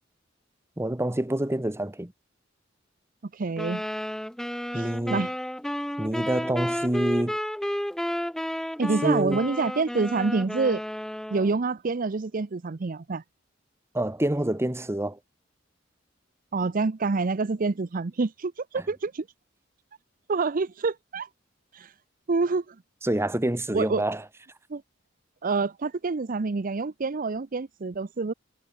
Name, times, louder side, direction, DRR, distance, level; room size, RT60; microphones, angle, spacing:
voice 1, 0.8-2.1 4.7-5.2 6.0-7.4 8.8-9.4 13.9-15.2 23.0-24.2, right 1 dB, 15° right, 1.0 m, -27 dB
voice 2, 3.3-3.8 4.7-5.3 8.8-10.8 11.3-13.2 16.5-19.3 20.3-21.3 21.7-21.9 22.3-22.8 23.7-24.0 24.7-24.8 25.4-28.3, right 4 dB, 45° right, 0.6 m, -27 dB
sound 1, 3.6-11.6, equal, ahead, 0.3 m, -32 dB
head